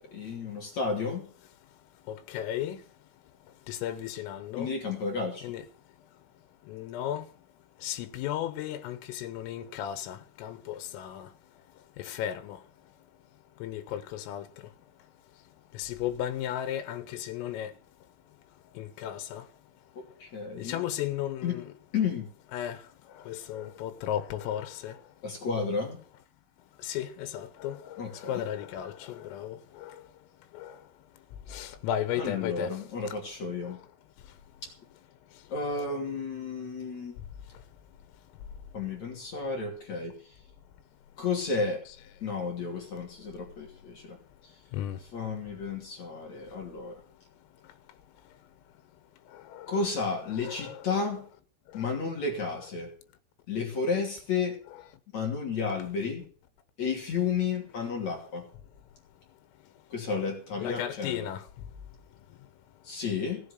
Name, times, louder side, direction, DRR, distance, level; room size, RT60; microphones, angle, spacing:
voice 1, 0.1-1.2 4.6-5.5 20.2-20.9 21.4-21.6 21.9-22.3 25.2-26.0 28.0-28.4 32.2-33.8 35.5-37.1 38.7-40.4 41.2-41.8 42.2-44.2 45.1-47.0 49.7-51.2 51.7-52.9 53.5-54.6 55.1-56.2 56.8-58.5 59.9-61.3 62.8-63.4, left 5 dB, 40° left, 3.5 m, -32 dB
voice 2, 2.1-2.8 3.7-4.7 5.4-5.7 6.7-7.3 7.8-11.3 12.0-12.6 13.6-14.5 15.8-17.7 18.8-19.4 20.6-21.7 22.5-22.8 23.3-25.0 26.8-29.9 30.6-30.7 31.5-32.7 44.7-45.0 49.6-49.9 50.4-51.0 60.6-61.4, left 11 dB, 90° left, 3.8 m, -35 dB
17.5 x 7.7 x 6.6 m
omnidirectional pair, 5.7 m